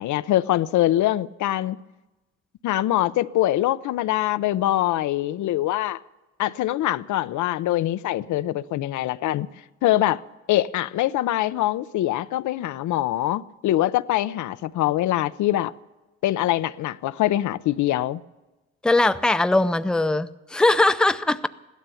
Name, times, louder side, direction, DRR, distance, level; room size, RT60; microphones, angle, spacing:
voice 1, 0.0-1.8 2.6-6.0 6.4-9.5 9.8-10.2 10.5-15.7 16.2-18.2, left 14 dB, 75° left, 0.6 m, -23 dB
voice 2, 18.8-21.5, left 2 dB, 5° left, 0.5 m, -20 dB
16.0 x 12.5 x 6.9 m
cardioid pair, 90°, 30 cm